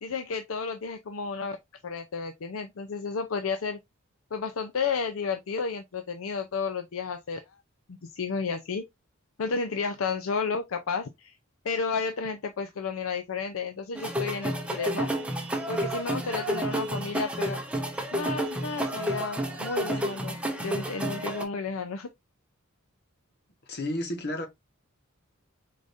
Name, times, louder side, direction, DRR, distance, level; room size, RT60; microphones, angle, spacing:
voice 1, 0.0-1.6 1.8-3.8 4.3-7.4 8.0-8.8 9.4-11.3 11.6-15.1 15.7-17.6 18.1-22.1, left 5 dB, 70° left, 0.5 m, -32 dB
sound 1, 13.9-21.4, right 1 dB, 5° right, 0.8 m, -31 dB
voice 2, 23.7-24.5, left 1 dB, 55° left, 1.2 m, -31 dB
4.9 x 3.9 x 2.6 m
head